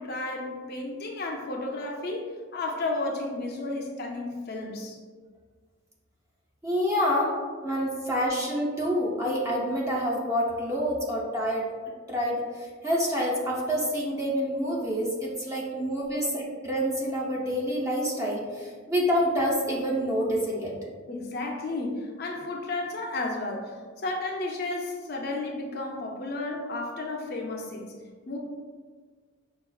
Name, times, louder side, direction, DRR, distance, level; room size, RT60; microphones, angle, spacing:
voice 1, 0.0-5.0 6.9-7.3 7.9-8.1 15.7-15.8 16.1-16.2 21.1-27.9 28.3-28.4, left 2 dB, 50° left, 1 dB, 0.4 m, -33 dB
voice 2, 6.6-7.3 7.6-11.7 12.1-20.7, equal, 15° right, -4 dB, 0.6 m, -27 dB
5.5 x 2.3 x 2.3 m, 1.5 s
head